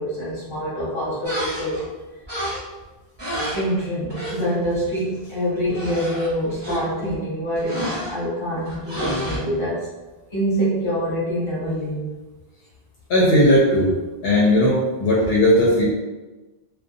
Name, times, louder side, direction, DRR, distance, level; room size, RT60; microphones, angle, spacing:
voice 1, 0.0-1.8 3.5-9.9 10.3-12.1, equal, 30° left, -8 dB, 1.2 m, -25 dB
sound 1, 1.2-1.9 2.2-2.8 3.2-4.3 4.6-4.9 5.2-5.3 5.6-7.2 7.6-8.1 8.6-9.4, equal, 25° right, 1.0 m, -29 dB
voice 2, 13.1-13.9 14.2-15.8, left 1 dB, 75° left, -5 dB, 0.8 m, -17 dB
2.6 x 2.2 x 2.5 m, 1.1 s
omnidirectional pair, 1.0 m